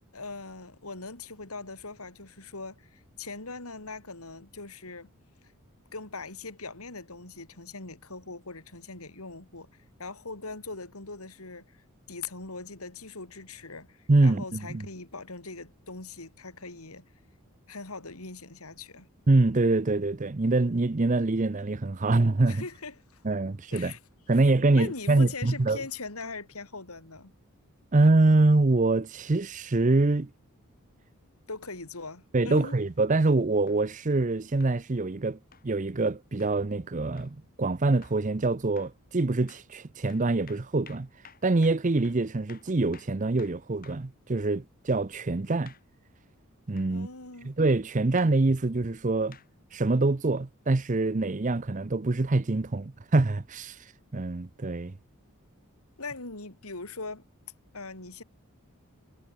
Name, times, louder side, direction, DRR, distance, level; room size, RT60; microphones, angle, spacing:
voice 1, 0.0-5.1 5.9-9.7 10.0-17.0 17.7-19.1 22.5-23.2 23.7-24.0 24.7-27.3 31.5-32.8 46.9-47.5 56.0-57.2 57.7-58.2, left 3 dB, 80° left, 3.8 m, -41 dB
voice 2, 14.1-14.9 19.3-22.6 23.2-23.9 24.3-25.8 27.9-30.3 32.3-41.1 41.4-45.7 46.7-47.1 47.4-49.4 49.7-53.8 54.1-54.9, right 2 dB, 35° right, 0.6 m, -25 dB
sound 1, 32.6-32.7 33.7-33.9 34.6-34.8 35.5-35.7 36.4-36.6 37.2-37.4 38.0-38.3 38.8-39.0 39.5-39.7 40.1-44.1 45.7-45.9 46.8-46.9 48.2-48.4 49.3-49.5 50.4-50.5, left 7 dB, 40° left, 7.9 m, -54 dB
head